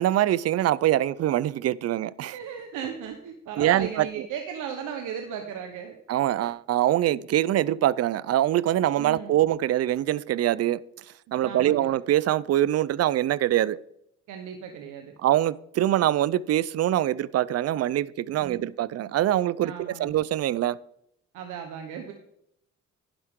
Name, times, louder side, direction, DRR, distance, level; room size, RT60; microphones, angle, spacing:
voice 1, 0.0-2.4 3.6-4.0 6.1-10.8 11.3-13.8 15.2-20.8, right 13 dB, 55° right, 0.5 m, -24 dB
voice 2, 2.3-6.0 9.0-9.4 11.4-11.9 14.3-15.1 18.4-18.7 19.6-20.1 21.3-22.1, right 8 dB, 90° right, 1.2 m, -36 dB
11.0 x 10.5 x 3.7 m
cardioid pair, 90°, 30 cm